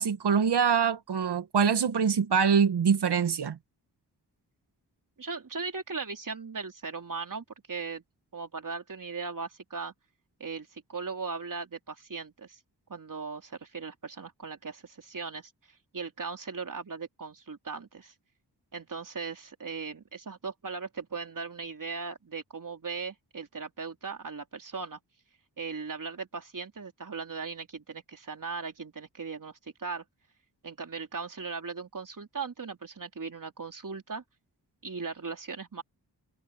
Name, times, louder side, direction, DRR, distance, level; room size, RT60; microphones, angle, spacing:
voice 1, 0.0-3.6, right 6 dB, 80° right, 1.4 m, -24 dB
voice 2, 5.2-8.0 8.3-9.9 10.4-12.6 12.9-15.5 15.9-18.1 18.7-25.0 25.6-30.0 30.6-34.2 34.8-35.8, right 4 dB, 50° right, 3.6 m, -38 dB
cardioid pair, 60°, 40 cm